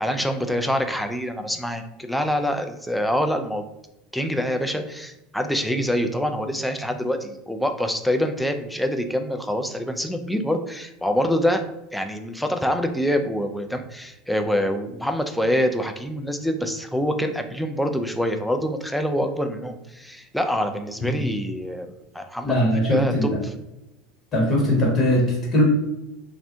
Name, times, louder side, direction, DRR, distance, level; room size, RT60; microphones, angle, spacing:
voice 1, 0.0-3.6 4.1-11.6 11.9-21.9 22.1-22.5 22.9-23.3, equal, ahead, 6 dB, 0.3 m, -25 dB
voice 2, 22.4-23.4 24.3-25.6, left 1 dB, 35° left, -3 dB, 1.3 m, -20 dB
2.5 x 2.1 x 2.7 m, 0.89 s
hypercardioid pair, 80°, 0 cm